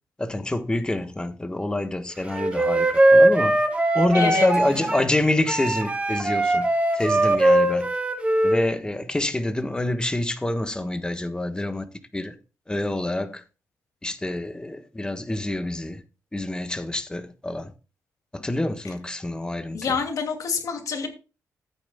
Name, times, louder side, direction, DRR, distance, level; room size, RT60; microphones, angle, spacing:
voice 1, 0.2-3.6 3.9-6.7 6.9-7.9 8.4-11.9 12.1-12.3 12.7-13.4 14.0-16.0 16.3-17.7 18.3-20.0, left 1 dB, 15° left, 1.3 m, -26 dB
Wind instrument woodwind instrument, 2.3-5.1 5.5-8.6, right 1 dB, 20° right, 2.1 m, -20 dB
voice 2, 4.1-4.5 19.7-21.1, left 5 dB, 70° left, 2.6 m, -27 dB
14.0 x 8.9 x 2.3 m
cardioid pair, 90°, 6 cm